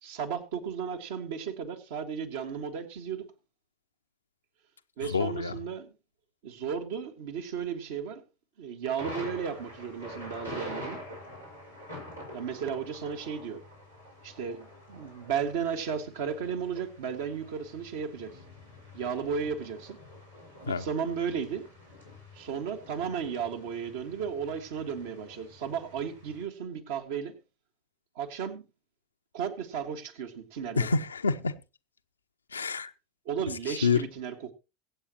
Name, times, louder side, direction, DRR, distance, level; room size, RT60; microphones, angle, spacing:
voice 1, 0.0-3.2 5.0-5.9 6.4-8.2 8.6-11.0 12.3-13.6 14.2-18.4 18.9-20.0 20.6-21.7 22.3-27.3 28.1-28.6 29.3-30.9 33.2-34.5, right 7 dB, 60° right, 1.8 m, -34 dB
voice 2, 5.0-5.5 20.7-20.8 30.8-31.5 32.5-32.9 33.7-34.1, left 4 dB, 80° left, 0.7 m, -27 dB
Thunder, 9.0-26.4, left 1 dB, 90° right, 5.3 m, -46 dB
22.0 x 8.5 x 3.0 m
figure-of-eight pair, 80°, 0 cm